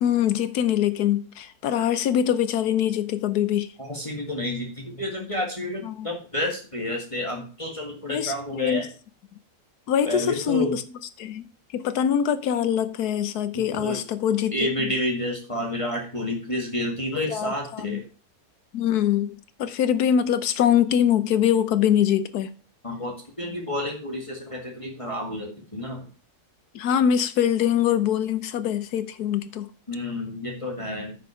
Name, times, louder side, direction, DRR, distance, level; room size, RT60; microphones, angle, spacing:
voice 1, 0.0-3.7 5.9-6.1 8.1-8.9 9.9-10.8 11.2-11.5 11.7-14.5 14.8-14.9 17.2-18.0 18.7-22.5 26.7-29.7, left 9 dB, 80° left, 1.3 m, -23 dB
voice 2, 3.8-8.9 10.0-10.8 13.5-14.0 14.5-18.0 22.8-26.1 29.9-31.2, left 1 dB, 20° left, 2.0 m, -30 dB
9.5 x 6.1 x 4.9 m
omnidirectional pair, 1.7 m